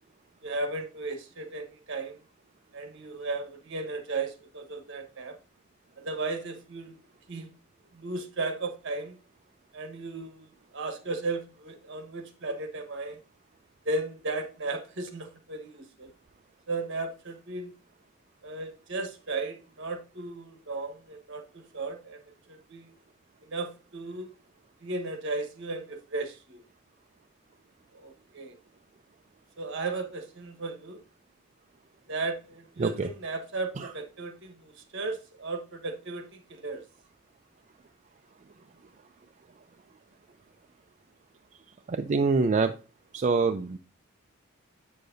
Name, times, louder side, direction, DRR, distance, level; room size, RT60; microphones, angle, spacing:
voice 1, 0.4-2.2 2.7-5.4 6.0-7.0 7.3-7.5 7.9-9.2 9.7-13.2 13.8-16.1 16.7-17.7 18.4-22.2 22.5-23.0 23.4-24.3 24.8-26.7 27.9-28.6 29.6-31.0 32.1-36.9, right 3 dB, 60° right, 1.2 m, -35 dB
voice 2, 41.9-42.7 43.1-43.8, right 4 dB, 35° right, 0.3 m, -25 dB
7.7 x 6.5 x 2.6 m
head